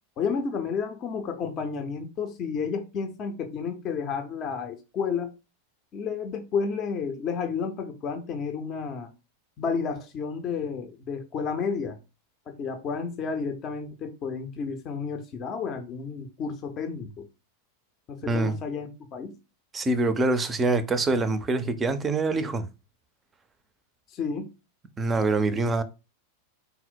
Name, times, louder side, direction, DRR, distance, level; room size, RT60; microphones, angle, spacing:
voice 1, 0.2-5.3 5.9-9.1 9.6-12.0 12.5-17.3 18.1-19.4 24.1-24.5, left 5 dB, 30° left, 0.6 m, -31 dB
voice 2, 18.3-18.6 19.7-22.7 25.0-25.8, right 2 dB, 20° right, 0.5 m, -25 dB
3.8 x 2.1 x 4.2 m
figure-of-eight pair, 90°, 0 cm